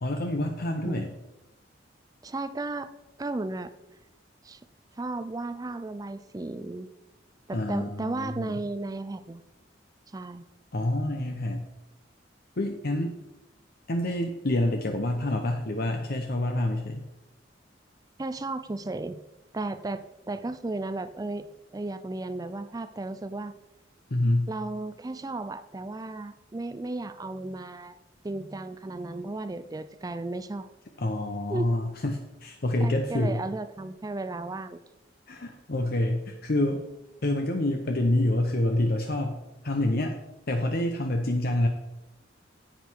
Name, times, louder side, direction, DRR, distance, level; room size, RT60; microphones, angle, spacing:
voice 1, 0.0-1.1 7.5-8.5 10.7-11.6 12.6-13.1 13.9-17.0 24.1-24.5 31.0-33.4 35.3-36.8 37.2-39.4 39.6-40.2 40.5-41.7, left 1 dB, 55° left, 4 dB, 0.8 m, -27 dB
voice 2, 2.2-2.9 3.2-3.7 4.4-4.6 4.9-6.9 7.5-9.4 10.1-10.4 18.2-19.2 19.5-21.5 21.7-23.5 24.5-28.0 28.2-30.7 31.5-31.7 32.8-34.8, right 2 dB, 20° right, 12 dB, 0.4 m, -34 dB
10.0 x 8.4 x 4.6 m, 0.95 s
head